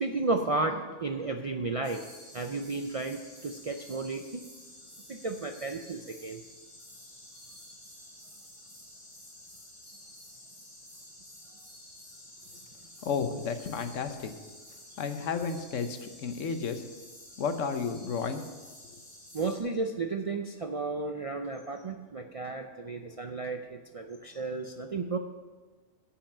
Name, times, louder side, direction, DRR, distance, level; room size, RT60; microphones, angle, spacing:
voice 1, 0.0-2.0 2.3-4.4 5.1-6.4 19.3-25.2, right 3 dB, 55° right, 5 dB, 0.4 m, -33 dB
sound 1, 1.8-19.6, left 1 dB, 25° left, 2.1 m, -51 dB
voice 2, 13.0-14.3 15.0-16.8 17.4-18.4, left 5 dB, 85° left, 8 dB, 1.2 m, -32 dB
10.0 x 5.7 x 7.3 m, 1.4 s
omnidirectional pair, 1.2 m